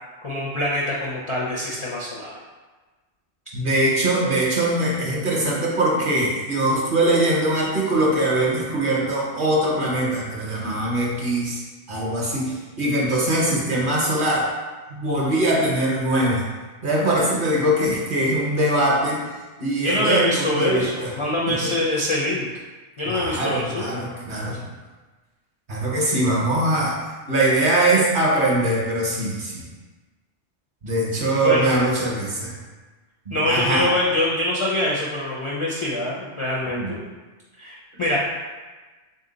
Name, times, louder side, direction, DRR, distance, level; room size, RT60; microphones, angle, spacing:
voice 1, 0.2-2.3 19.8-22.5 23.0-23.9 31.4-32.1 33.3-37.0 37.6-38.2, left 1 dB, 50° left, -5 dB, 0.3 m, -24 dB
voice 2, 3.5-11.6 11.9-14.5 14.9-16.4 16.8-19.2 19.6-21.1 21.6-21.8 23.0-24.6 25.7-27.0 27.3-29.7 30.8-32.6 33.3-33.9 36.7-36.9, right 1 dB, 50° right, -3 dB, 0.8 m, -22 dB
3.6 x 2.8 x 3.8 m, 1.3 s
omnidirectional pair, 1.3 m